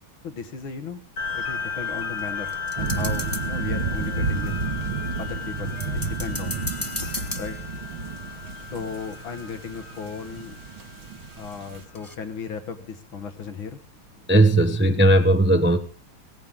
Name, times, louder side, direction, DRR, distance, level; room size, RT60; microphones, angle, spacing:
voice 1, 0.2-1.0 1.4-4.5 5.2-6.6 7.3-7.6 8.7-10.6 11.4-13.8, left 6 dB, 75° left, 7 dB, 2.5 m, -36 dB
sound 1, 1.2-12.0, left 5 dB, 90° left, 5.3 m, -35 dB
sound 2, 2.2-3.7 5.8-8.1 10.3-10.4 10.9-11.0 12.0-12.2, left 2 dB, 10° left, 1.0 m, -36 dB
sound 3, 2.8-11.8, right 4 dB, 75° right, 2.9 m, -31 dB
voice 2, 14.3-15.8, right 1 dB, 10° right, 8 dB, 0.7 m, -17 dB
18.0 x 15.5 x 3.7 m, 0.35 s
omnidirectional pair, 2.3 m